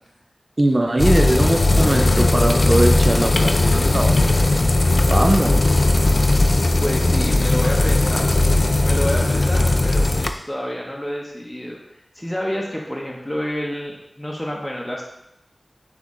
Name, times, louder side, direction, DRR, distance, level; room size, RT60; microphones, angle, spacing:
voice 1, 0.6-4.2 5.1-5.7, right 1 dB, 40° right, 4 dB, 0.4 m, -21 dB
sound 1, 1.0-10.3, left 2 dB, 60° left, 0.3 m, -17 dB
voice 2, 6.8-8.4 8.8-15.0, equal, 15° left, -2 dB, 0.7 m, -29 dB
4.0 x 3.0 x 3.6 m, 0.82 s
cardioid pair, 40°, 0 cm